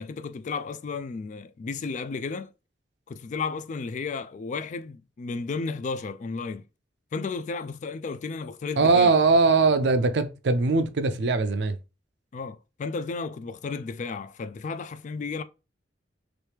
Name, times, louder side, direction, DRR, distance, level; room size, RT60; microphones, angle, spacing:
voice 1, 0.0-2.5 3.1-6.6 7.1-9.2 12.3-15.4, left 4 dB, 45° left, 0.3 m, -33 dB
voice 2, 8.8-11.8, right 3 dB, 70° right, 0.5 m, -21 dB
3.1 x 3.0 x 3.3 m
head